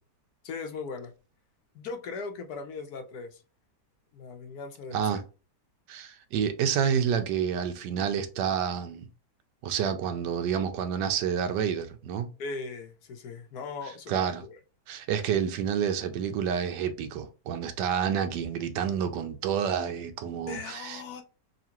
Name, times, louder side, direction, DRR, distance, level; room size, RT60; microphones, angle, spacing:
voice 1, 0.4-1.1 1.7-3.4 4.1-5.2 12.4-14.6 20.5-21.2, left 4 dB, 70° left, 1.1 m, -39 dB
voice 2, 5.9-9.1 9.6-12.3 14.1-14.4 14.9-21.0, right 8 dB, 80° right, 1.3 m, -29 dB
5.5 x 2.4 x 2.9 m
omnidirectional pair, 1.9 m